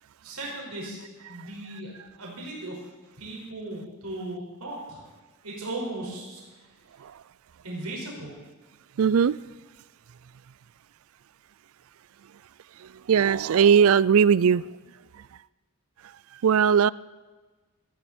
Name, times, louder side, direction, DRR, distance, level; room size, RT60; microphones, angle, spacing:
voice 1, 0.2-1.0 1.3-2.8 3.2-5.1 5.4-6.4 7.6-8.4, right 2 dB, 90° right, 5.4 m, -37 dB
voice 2, 9.0-9.4 13.1-14.6 16.4-16.9, right 7 dB, 65° right, 0.4 m, -19 dB
19.5 x 14.0 x 4.4 m
head